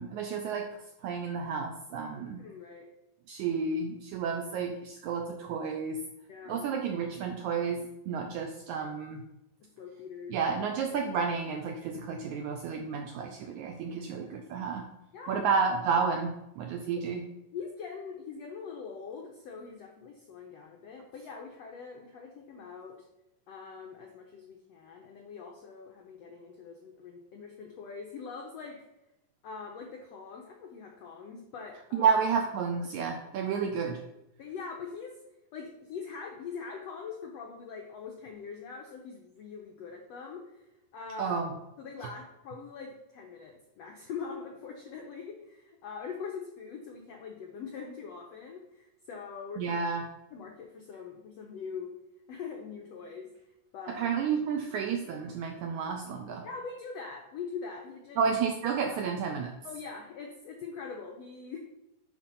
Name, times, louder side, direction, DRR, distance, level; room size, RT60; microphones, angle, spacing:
voice 1, 0.0-2.4 3.3-6.0 6.5-9.2 10.3-14.9 15.3-17.2 31.9-34.0 41.2-41.5 49.6-50.1 53.9-56.5 58.2-59.5, right 5 dB, 85° right, 3 dB, 1.7 m, -31 dB
voice 2, 2.4-2.9 3.4-3.5 6.3-6.7 9.6-10.3 15.1-15.5 17.5-23.0 23.5-28.8 29.4-32.2 34.4-35.2 35.5-40.6 40.9-41.4 41.8-49.8 50.3-51.9 52.3-53.3 53.7-54.1 56.4-58.2 59.6-61.6, left 5 dB, 85° left, 1 dB, 1.4 m, -43 dB
8.8 x 4.4 x 5.5 m, 0.90 s
omnidirectional pair, 4.1 m